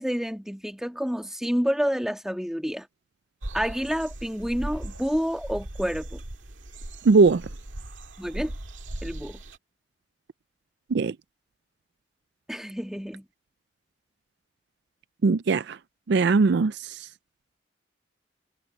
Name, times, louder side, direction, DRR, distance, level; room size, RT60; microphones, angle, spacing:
voice 1, 0.0-2.9 3.5-6.2 8.2-8.5 9.0-9.4 12.5-13.3, equal, 5° right, 1.8 m, -29 dB
sound 1, 3.4-9.6, right 1 dB, 85° right, 2.0 m, -38 dB
voice 2, 7.1-7.4 10.9-11.1 15.2-15.8 16.1-16.7, right 4 dB, 60° right, 0.4 m, -19 dB
head